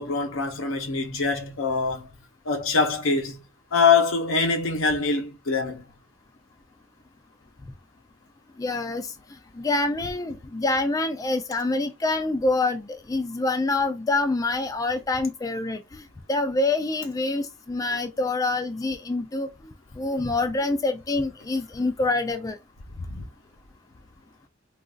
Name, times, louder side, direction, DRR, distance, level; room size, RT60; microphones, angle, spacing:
voice 1, 0.0-2.1 2.5-3.4 3.7-5.8 23.1-23.3, left 4 dB, 85° left, 0.8 m, -24 dB
voice 2, 8.6-9.1 9.5-19.5 20.0-22.6, left 2 dB, 15° left, 0.3 m, -26 dB
3.8 x 2.4 x 2.4 m
head